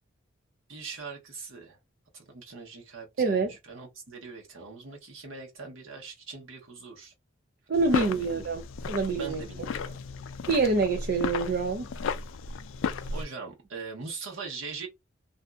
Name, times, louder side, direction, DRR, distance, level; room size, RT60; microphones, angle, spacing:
voice 1, 0.7-1.8 2.1-7.1 7.9-8.4 9.1-10.0 13.1-14.9, right 4 dB, 80° right, 1.1 m, -41 dB
voice 2, 3.2-3.5 7.7-8.6 8.9-9.4 10.5-11.9, right 4 dB, 50° right, 0.4 m, -26 dB
sound 1, 7.7-13.2, left 5 dB, 70° left, 0.3 m, -34 dB
2.6 x 2.5 x 2.2 m
head